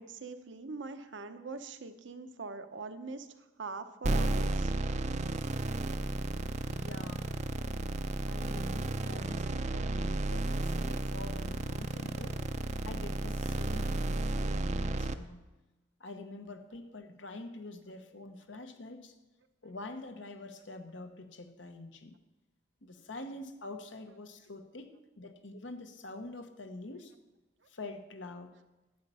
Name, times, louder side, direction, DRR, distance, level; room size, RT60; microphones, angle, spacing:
voice 1, 0.0-3.3 3.6-4.7, right 4 dB, 75° right, 8 dB, 0.8 m, -43 dB
sound 1, 4.0-15.1, right 2 dB, 40° right, 0.5 m, -33 dB
voice 2, 6.7-7.3 8.3-12.4 12.8-15.4 16.0-19.1 19.6-22.1 22.8-27.1 27.7-28.5, left 2 dB, 75° left, 7 dB, 1.0 m, -46 dB
11.0 x 8.4 x 5.5 m, 1.1 s
head